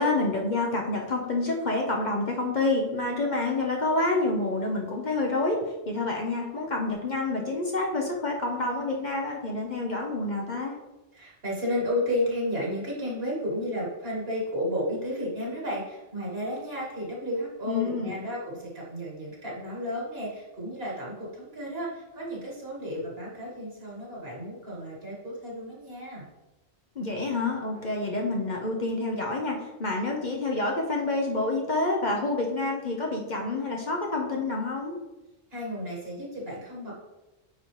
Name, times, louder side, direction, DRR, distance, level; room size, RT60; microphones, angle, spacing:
voice 1, 0.0-5.6 5.9-10.8 17.7-18.1 27.0-35.0, left 2 dB, 40° left, 0 dB, 0.9 m, -28 dB
voice 2, 11.1-26.3 35.5-36.9, equal, 50° right, -5 dB, 2.2 m, -32 dB
9.2 x 3.9 x 3.3 m, 1.1 s
omnidirectional pair, 1.3 m